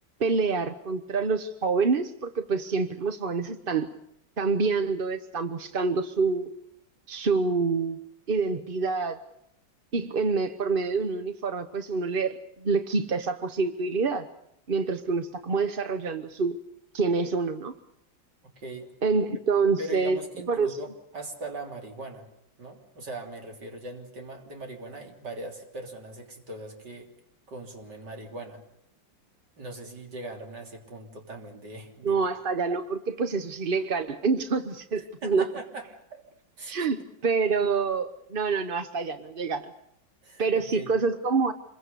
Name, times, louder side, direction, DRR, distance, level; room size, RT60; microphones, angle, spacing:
voice 1, 0.2-3.9 4.4-6.5 7.1-8.0 8.3-9.2 9.9-14.3 14.7-16.6 16.9-17.7 19.0-20.2 20.5-20.7 32.0-35.5 36.6-39.7 40.4-41.5, right 4 dB, 40° right, 10 dB, 0.9 m, -27 dB
voice 2, 18.6-18.9 19.8-22.3 22.6-27.1 27.5-28.6 29.6-32.2 35.0-36.2 36.6-36.9 40.2-41.0, right 2 dB, 65° right, 3 dB, 3.9 m, -40 dB
26.5 x 22.5 x 6.8 m, 0.76 s
omnidirectional pair, 2.0 m